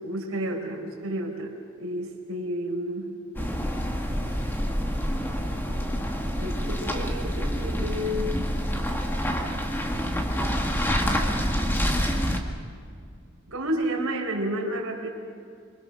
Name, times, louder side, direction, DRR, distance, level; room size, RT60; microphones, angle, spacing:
voice 1, 0.0-3.1 5.6-5.7 6.4-8.4 13.5-15.1, equal, 80° right, 1 dB, 4.8 m, -31 dB
sound 1, 3.3-12.4, equal, 10° left, 1.7 m, -27 dB
26.0 x 24.5 x 6.4 m, 2.3 s
head